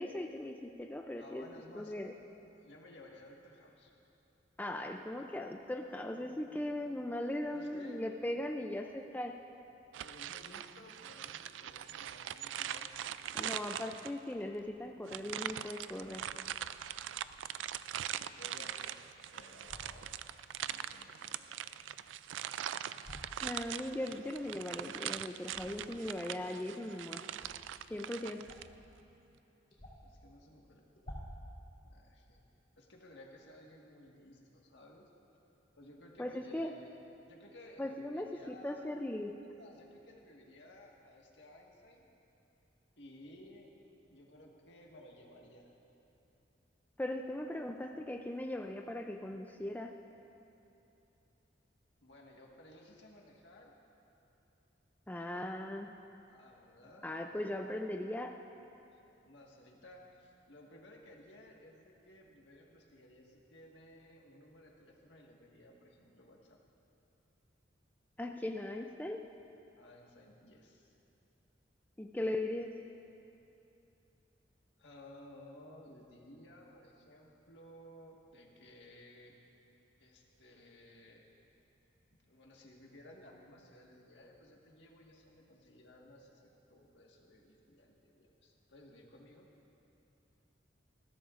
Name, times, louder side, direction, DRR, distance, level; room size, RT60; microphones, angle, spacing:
voice 1, 0.0-1.4 1.8-2.1 4.6-9.4 13.3-16.3 23.4-27.3 27.9-28.4 36.2-36.7 37.8-39.3 47.0-50.0 55.1-55.9 57.0-58.4 68.2-69.3 72.0-72.7, left 1 dB, 10° left, 3 dB, 0.3 m, -39 dB
voice 2, 1.2-1.9 2.6-3.9 7.5-8.0 10.0-12.9 13.3-13.8 18.1-19.1 19.3-20.2 20.6-21.7 30.0-30.8 31.9-32.4 32.8-35.1 35.8-37.0 37.3-38.9 39.4-42.1 43.0-43.7 44.1-45.7 52.0-53.7 56.3-57.1 58.9-66.6 69.8-70.9 74.8-79.3 80.0-81.2 82.3-89.5, left 1 dB, 70° left, -1 dB, 1.6 m, -57 dB
sound 1, 9.9-14.3 15.1-28.7, right 10 dB, 85° right, 0.3 m, -42 dB
sound 2, 19.6-19.9 22.9-23.3 25.4-25.9 27.3-27.6 28.4-28.8 29.1-29.2 29.7-30.2 31.0-31.5, equal, 35° left, 3.1 m, -49 dB
20.5 x 15.0 x 2.5 m, 2.9 s
head